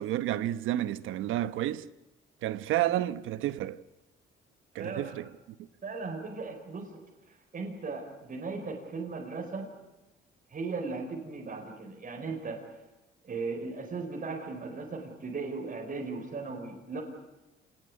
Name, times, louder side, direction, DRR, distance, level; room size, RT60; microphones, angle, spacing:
voice 1, 0.0-1.9 2.4-3.8 4.7-5.3, right 13 dB, 90° right, 1.0 m, -30 dB
voice 2, 4.8-5.1 5.8-7.0 7.3-9.7 10.5-12.6 13.2-17.0, right 4 dB, 45° right, 5.0 m, -37 dB
26.5 x 20.0 x 9.7 m
cardioid pair, 90°, 20 cm